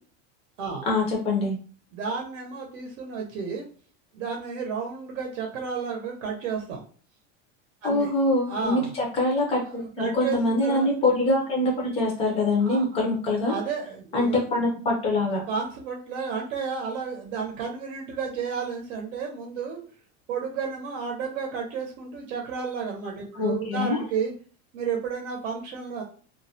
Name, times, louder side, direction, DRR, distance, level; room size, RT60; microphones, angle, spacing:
voice 1, 0.9-1.6 7.8-13.5 14.1-15.4 23.4-24.0, left 2 dB, 15° left, -1 dB, 0.4 m, -24 dB
voice 2, 1.9-3.7 4.1-6.8 7.8-8.1 8.5-8.9 9.7-10.9 12.6-13.0 13.5-14.3 15.3-19.8 20.3-24.3 24.7-26.0, right 5 dB, 80° right, 0 dB, 0.7 m, -32 dB
2.3 x 2.0 x 2.7 m, 0.41 s
cardioid pair, 175°, 36 cm